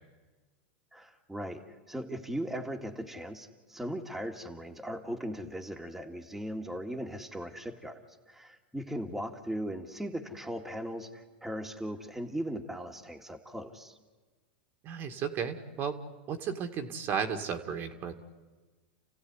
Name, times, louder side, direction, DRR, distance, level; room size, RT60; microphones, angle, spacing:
voice 1, 0.9-8.0 8.3-14.0, equal, 5° right, 2 dB, 2.3 m, -38 dB
voice 2, 14.8-16.0 16.3-18.1, right 7 dB, 40° right, 6 dB, 2.2 m, -34 dB
29.5 x 16.0 x 9.8 m, 1.3 s
hypercardioid pair, 115°, 6 cm